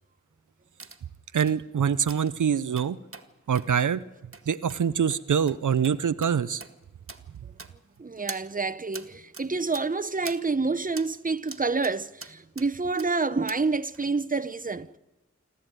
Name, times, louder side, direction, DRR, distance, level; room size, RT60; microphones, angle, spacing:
sound 1, 0.8-1.0 1.3-1.5 2.1-2.3 2.8-3.3 3.5-3.7 4.3-4.4 4.7-4.8 5.1-5.2 5.5-5.6 5.8-6.0 6.2-6.3 6.6-6.7 7.1-7.2 7.6-8.0 8.3-8.4 8.9-9.1 9.3-9.5 9.7-9.9 10.2-10.4 11.0-11.1 11.5-12.0 12.2-12.7 13.0-13.1 13.5-13.6 13.9-14.0, right 3 dB, 45° right, 1.7 m, -42 dB
voice 1, 1.3-3.0 3.5-4.0 4.5-6.6, right 7 dB, 85° right, 0.6 m, -24 dB
voice 2, 8.0-14.9, right 3 dB, 30° right, 0.9 m, -28 dB
27.5 x 12.5 x 9.1 m
cardioid pair, 40°, 30 cm